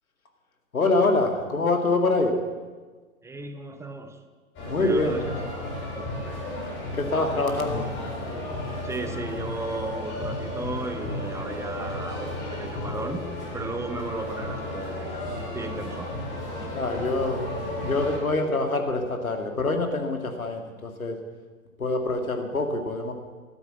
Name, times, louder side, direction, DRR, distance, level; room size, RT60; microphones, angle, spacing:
voice 1, 0.7-2.4 4.7-5.2 6.9-7.9 16.7-17.4 17.8-21.2 21.8-23.1, left 2 dB, 85° left, 5 dB, 2.2 m, -25 dB
voice 2, 3.2-4.2 4.6-5.4 5.9-6.1 8.8-13.3 13.5-15.2 15.5-16.1, right 3 dB, 5° right, 8 dB, 0.9 m, -35 dB
sound 1, 4.6-18.2, left 1 dB, 30° left, 5.0 m, -33 dB
13.0 x 12.5 x 7.3 m, 1.4 s
figure-of-eight pair, 110°, 41 cm